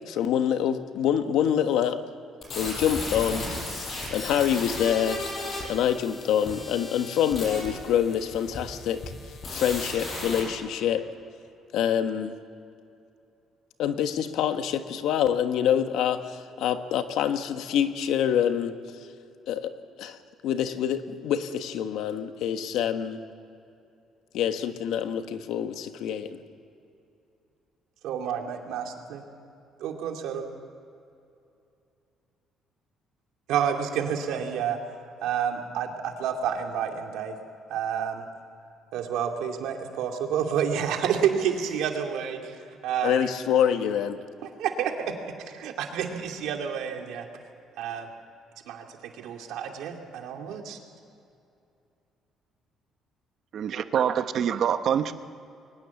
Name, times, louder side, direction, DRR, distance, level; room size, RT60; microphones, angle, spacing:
voice 1, 0.1-2.0 2.5-3.5 4.1-5.3 5.7-9.0 9.5-11.1 11.7-12.4 13.8-18.7 19.5-23.2 24.3-26.4 43.0-44.2, left 9 dB, 80° left, 8 dB, 1.4 m, -26 dB
sound 1, 2.4-10.4, left 2 dB, 35° left, 6.9 m, -35 dB
voice 2, 28.0-28.8 29.1-29.2 29.8-30.5 33.5-34.8 35.2-37.4 37.7-38.3 38.9-43.3 44.4-47.3 47.8-48.1 48.7-50.8, right 8 dB, 85° right, 3 dB, 2.7 m, -29 dB
voice 3, 53.5-55.1, right 8 dB, 50° right, 10 dB, 0.9 m, -25 dB
22.5 x 20.0 x 7.2 m, 2.6 s
cardioid pair, 160°, 0 cm